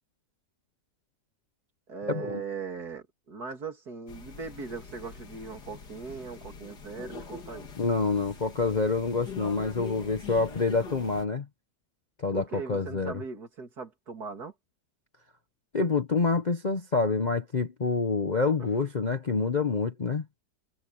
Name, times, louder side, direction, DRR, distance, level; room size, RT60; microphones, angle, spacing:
voice 1, 1.9-7.7 12.3-14.5 18.6-18.7, right 5 dB, 65° right, 3.3 m, -39 dB
sound 1, 4.1-11.2, left 4 dB, 75° left, 2.9 m, -44 dB
voice 2, 7.8-11.5 12.2-13.2 15.7-20.2, left 4 dB, 35° left, 0.8 m, -27 dB
omnidirectional pair, 1.8 m